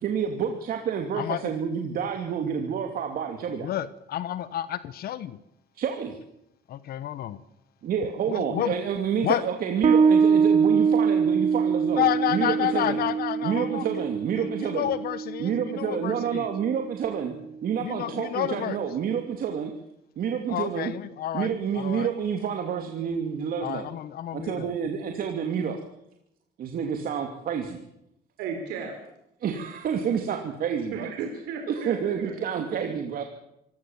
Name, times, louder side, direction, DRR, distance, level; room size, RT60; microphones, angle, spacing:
voice 1, 0.0-3.7 5.7-6.2 7.8-12.0 12.3-13.0 13.4-14.9 15.4-17.4 17.6-19.7 20.2-20.9 21.3-23.9 24.3-25.8 26.6-27.8 29.4-31.1 31.7-33.2, right 7 dB, 60° right, 4 dB, 2.8 m, -29 dB
voice 2, 3.6-5.4 6.7-7.4 8.3-8.8 9.2-9.4 11.9-14.0 14.4-16.5 17.8-18.8 20.5-21.5 21.7-22.1 23.6-24.7, left 12 dB, 65° left, 15 dB, 1.2 m, -30 dB
Bass guitar, 9.8-17.0, right 6 dB, 40° right, 2.3 m, -24 dB
voice 3, 28.4-28.9 30.9-32.6, right 5 dB, 90° right, 3 dB, 4.5 m, -35 dB
25.5 x 17.5 x 7.4 m, 0.80 s
cardioid pair, 110°, 17 cm